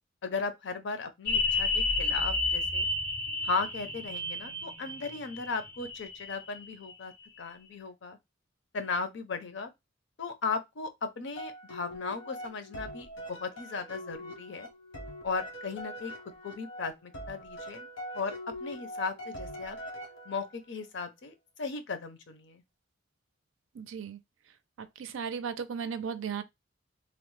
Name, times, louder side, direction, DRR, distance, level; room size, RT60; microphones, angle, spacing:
voice 1, 0.2-2.9 3.4-7.1 7.4-8.2 8.7-9.7 10.2-14.7 15.2-16.1 16.4-17.9 18.1-18.3 18.6-19.8 20.3-22.6, left 4 dB, 65° left, 0.6 m, -36 dB
sound 1, 1.3-6.6 6.9-7.0, left 3 dB, 10° left, 0.4 m, -31 dB
Long Journey Ahead, 11.4-20.6, equal, 80° left, 0.9 m, -43 dB
voice 2, 23.8-24.2 25.0-26.4, right 6 dB, 85° right, 0.4 m, -35 dB
3.0 x 2.0 x 3.0 m
head